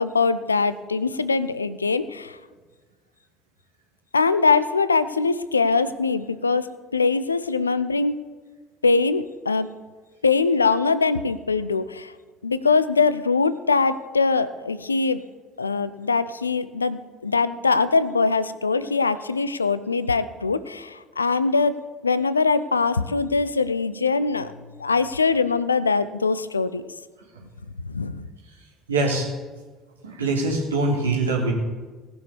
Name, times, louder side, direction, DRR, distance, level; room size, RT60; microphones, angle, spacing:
voice 1, 0.0-2.4 4.1-8.1 8.8-9.7 10.2-12.1 12.4-15.2 15.6-21.8 22.0-24.5 24.8-26.8 27.8-28.3, left 4 dB, 85° left, 15 dB, 0.5 m, -22 dB
voice 2, 28.9-29.3 30.0-31.5, right 2 dB, 80° right, -2 dB, 2.6 m, -23 dB
18.0 x 6.3 x 7.0 m, 1.4 s
figure-of-eight pair, 60°, 0 cm